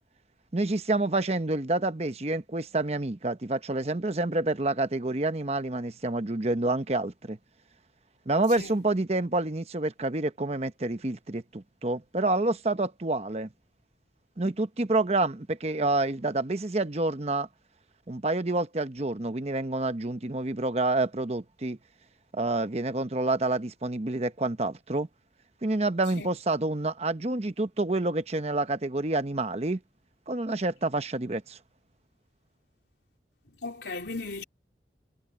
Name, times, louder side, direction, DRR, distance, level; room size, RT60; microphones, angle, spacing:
voice 1, 0.5-7.4 8.3-13.5 14.4-17.5 18.1-21.8 22.3-25.1 25.6-29.8 30.3-31.6, right 2 dB, 35° right, 0.9 m, -28 dB
voice 2, 33.6-34.4, left 3 dB, 75° left, 3.2 m, -36 dB
head